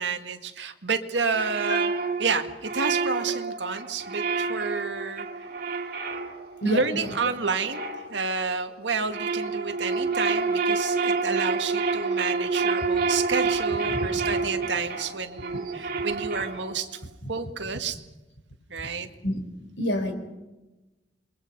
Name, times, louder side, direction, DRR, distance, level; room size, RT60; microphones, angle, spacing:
voice 1, 0.0-1.9 2.2-5.5 6.6-7.8 8.1-16.9 17.3-18.0 18.7-19.1, right 5 dB, 75° right, 6 dB, 1.9 m, -30 dB
sound 1, 1.3-8.6 8.9-16.9, right 4 dB, 55° right, 2.3 m, -28 dB
voice 2, 6.6-7.1 13.8-14.3 19.2-19.4 19.8-20.1, equal, 90° left, 6 dB, 4.5 m, -28 dB
27.5 x 23.0 x 5.5 m, 1.1 s
head